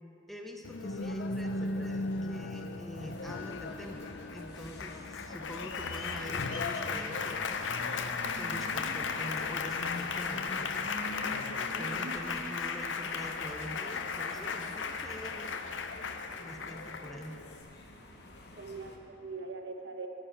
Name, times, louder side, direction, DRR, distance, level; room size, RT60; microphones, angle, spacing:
voice 1, 0.3-4.0 4.3-7.8 8.3-10.9 11.8-15.6 16.4-17.4, equal, ahead, 2 dB, 0.6 m, -45 dB
Applause, 0.6-17.6, left 4 dB, 80° left, 0.6 m, -36 dB
sound 1, 3.0-19.0, left 1 dB, 60° left, 1.0 m, -47 dB
voice 2, 11.7-12.1 18.6-20.1, right 3 dB, 70° right, 5 dB, 0.9 m, -42 dB
9.4 x 7.4 x 8.8 m, 2.8 s
head